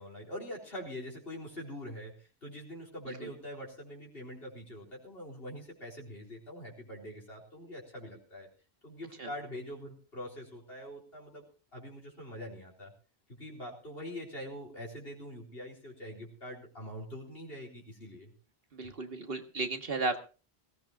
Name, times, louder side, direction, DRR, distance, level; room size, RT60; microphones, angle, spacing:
voice 1, 0.0-8.5 8.8-11.5 11.7-12.9 13.4-18.3, equal, 65° left, -2 dB, 4.2 m, -44 dB
voice 2, 18.7-20.2, right 3 dB, 65° right, 6 dB, 1.8 m, -34 dB
22.0 x 16.5 x 2.5 m, 0.34 s
omnidirectional pair, 1.1 m